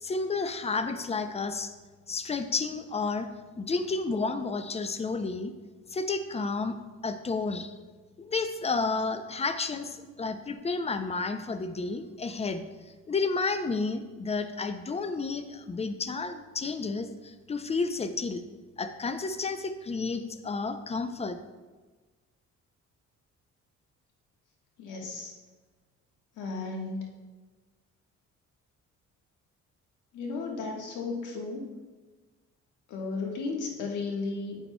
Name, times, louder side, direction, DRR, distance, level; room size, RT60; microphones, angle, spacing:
voice 1, 0.0-1.7 2.1-3.3 3.6-5.5 5.9-6.8 7.0-7.7 8.2-12.6 13.1-18.4 18.8-21.4, left 4 dB, 20° left, 9 dB, 0.5 m, -31 dB
voice 2, 24.8-25.3 26.4-27.0 30.1-31.7 32.9-34.6, left 3 dB, 85° left, 0 dB, 1.4 m, -34 dB
8.7 x 6.7 x 2.2 m, 1.3 s
cardioid pair, 90°, 30 cm